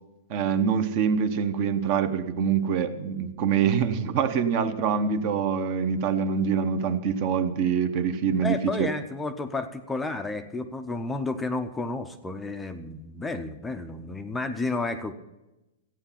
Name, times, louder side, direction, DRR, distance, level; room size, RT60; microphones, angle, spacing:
voice 1, 0.3-8.9, right 7 dB, 35° right, 11 dB, 0.9 m, -25 dB
voice 2, 8.3-15.1, left 3 dB, 5° left, 7 dB, 0.6 m, -31 dB
14.0 x 9.0 x 5.7 m, 0.97 s
supercardioid pair, 170°, 0 cm